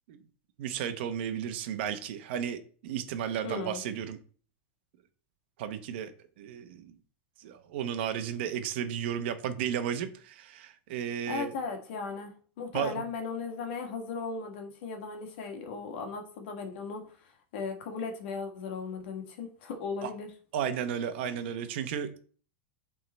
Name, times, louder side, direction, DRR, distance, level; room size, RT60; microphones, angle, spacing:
voice 1, 0.6-4.2 5.6-6.1 6.4-6.9 7.4-11.5 12.7-13.0 20.0-20.1 20.5-22.2, right 8 dB, 60° right, 1.0 m, -33 dB
voice 2, 3.4-3.8 11.3-20.3, left 4 dB, 65° left, 1.7 m, -37 dB
8.0 x 3.8 x 4.3 m
supercardioid pair, 155°, 7 cm